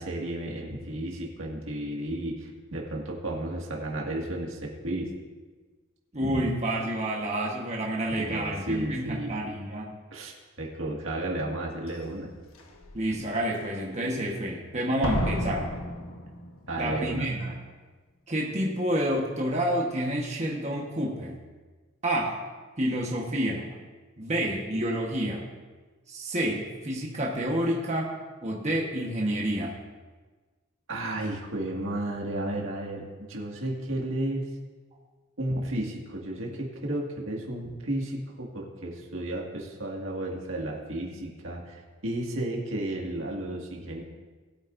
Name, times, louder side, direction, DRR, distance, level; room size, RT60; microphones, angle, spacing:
voice 1, 0.0-5.1 6.2-6.5 8.2-9.4 10.1-12.3 16.7-17.3 30.9-34.5 35.4-44.0, right 1 dB, 65° right, -1 dB, 2.0 m, -33 dB
voice 2, 6.1-9.9 12.9-15.7 16.7-17.6 18.3-21.4 22.0-22.4 22.8-23.6 24.2-25.4 26.1-28.1 28.4-29.8, right 1 dB, 35° right, -2 dB, 1.3 m, -29 dB
Slam, 11.9-12.0 12.6-13.0 15.0-16.9 17.2-17.3, left 1 dB, 90° left, 1.2 m, -32 dB
20.0 x 8.8 x 2.6 m, 1.3 s
head